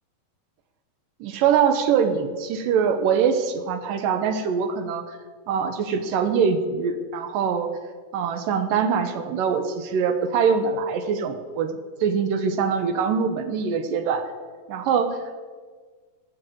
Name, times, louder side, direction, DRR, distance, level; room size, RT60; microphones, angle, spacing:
voice 1, 1.2-5.2 5.5-7.8 8.1-14.3 14.7-15.4, right 6 dB, 80° right, 8 dB, 2.5 m, -23 dB
18.0 x 6.3 x 7.6 m, 1.5 s
omnidirectional pair, 4.0 m